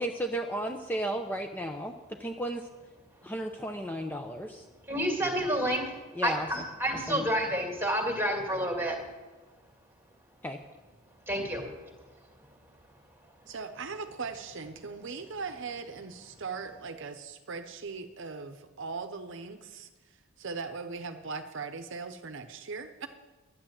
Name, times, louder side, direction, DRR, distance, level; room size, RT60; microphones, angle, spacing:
voice 1, 0.0-2.7 3.2-4.6 6.1-6.5 7.1-7.3 10.4-10.6, right 1 dB, 10° left, 4 dB, 0.6 m, -34 dB
voice 2, 4.9-6.0 6.2-9.0 11.3-11.7, equal, 10° right, 1 dB, 2.3 m, -29 dB
voice 3, 13.5-19.9 20.4-23.1, right 4 dB, 60° right, 8 dB, 0.8 m, -39 dB
11.5 x 9.6 x 7.5 m, 1.2 s
head